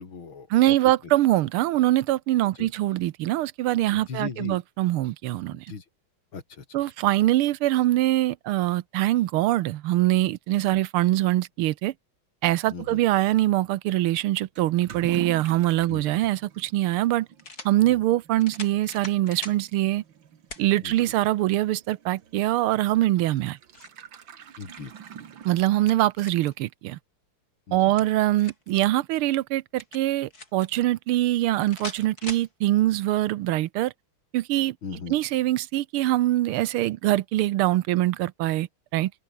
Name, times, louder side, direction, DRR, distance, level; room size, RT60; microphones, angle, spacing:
voice 1, 0.0-1.0 2.6-2.7 3.9-4.6 5.5-5.9 6.3-6.7 10.7-10.8 12.7-13.0 15.9-16.3 17.8-18.0 20.8-20.9 24.6-24.9 27.7-28.0 34.8-35.2, left 5 dB, 70° left, 3.7 m, -38 dB
voice 2, 0.5-5.7 6.7-11.9 12.4-17.3 17.6-20.0 20.6-23.6 25.4-27.0 27.7-33.9 34.3-34.8 35.1-39.1, right 15 dB, 90° right, 1.6 m, -23 dB
Toilet flush / Liquid, 14.6-26.2, right 8 dB, 65° right, 2.2 m, -45 dB
sound 1, 16.2-16.3 17.4-17.7 18.4-19.6 20.5-20.7 21.2-21.3 23.2-24.0 25.4-26.5 27.7-28.7 29.8-30.7 31.7-32.5, left 3 dB, 45° left, 5.4 m, -41 dB
open air
omnidirectional pair, 2.3 m